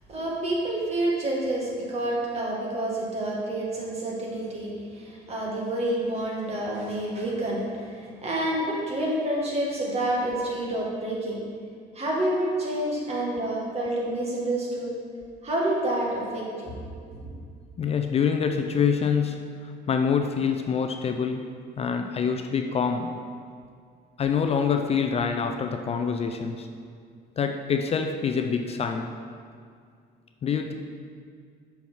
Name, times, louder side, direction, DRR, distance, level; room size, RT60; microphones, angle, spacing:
voice 1, 0.1-11.4 11.9-14.9 15.4-16.8, right 1 dB, 40° right, -3 dB, 2.0 m, -28 dB
voice 2, 17.8-21.5 21.8-23.1 24.2-26.7 27.4-29.1 30.4-30.7, left 6 dB, 35° left, 5 dB, 0.4 m, -26 dB
6.9 x 5.8 x 4.6 m, 2.2 s
cardioid pair, 110°, 17 cm